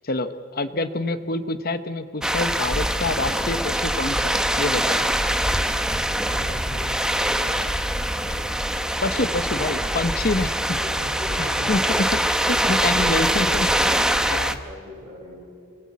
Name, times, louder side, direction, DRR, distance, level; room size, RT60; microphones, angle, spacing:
voice 1, 0.0-5.1 9.0-10.6 11.4-14.0 14.3-14.6, left 2 dB, 40° left, 11 dB, 0.9 m, -27 dB
voice 2, 1.2-1.6 6.1-7.6 8.1-8.5 10.8-11.7 12.6-13.9 14.6-15.4, left 1 dB, 25° right, -6 dB, 7.0 m, -39 dB
sound 1, 2.2-14.6, right 1 dB, 5° right, 0.9 m, -23 dB
28.0 x 21.0 x 8.5 m, 2.4 s
head